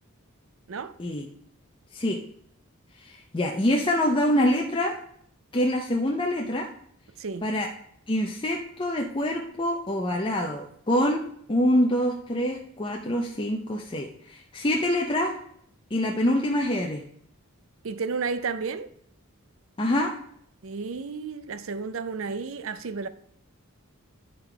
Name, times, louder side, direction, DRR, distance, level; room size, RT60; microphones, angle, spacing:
voice 1, 3.0-4.9 5.5-6.7 7.4-7.7 8.1-11.2 11.5-15.3 15.9-17.0 19.8-20.1, left 1 dB, 25° left, 0.6 m, -25 dB
voice 2, 7.2-7.5 17.8-18.9 20.6-23.1, right 5 dB, 65° right, 0.5 m, -32 dB
10.5 x 3.8 x 4.6 m
head